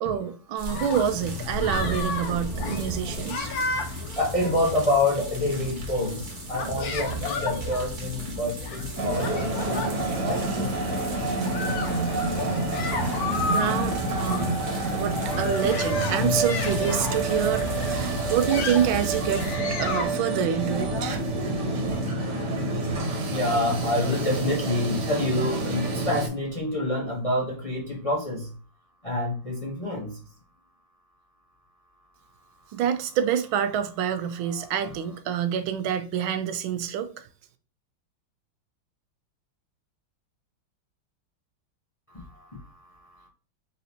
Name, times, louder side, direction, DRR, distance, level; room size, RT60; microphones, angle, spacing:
voice 1, 0.0-3.5 13.4-14.6 14.9-19.5 19.8-21.2 32.7-37.3, right 9 dB, 90° right, 1.4 m, -27 dB
sound 1, 0.6-19.5, right 3 dB, 35° right, 0.8 m, -38 dB
sound 2, 0.7-20.0, left 5 dB, 60° left, 1.2 m, -33 dB
voice 2, 4.2-10.0 10.2-10.7 12.4-12.5 21.0-21.2 23.3-28.5 29.0-30.2, left 1 dB, 25° left, 0.7 m, -27 dB
sound 3, 9.0-26.3, right 2 dB, 60° right, 1.7 m, -28 dB
4.2 x 4.0 x 2.7 m
omnidirectional pair, 2.2 m